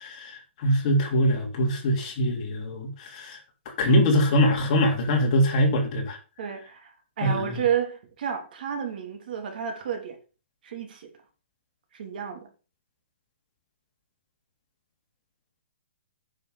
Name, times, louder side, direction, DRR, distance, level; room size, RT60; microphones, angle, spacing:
voice 1, 0.0-3.4 3.8-6.2 7.2-7.6, equal, 35° left, 3.2 m, -23 dB
voice 2, 6.4-10.2 10.6-11.1 11.9-12.5, right 8 dB, 50° right, 3.3 m, -31 dB
9.9 x 6.2 x 6.6 m
hypercardioid pair, 170°, 6 cm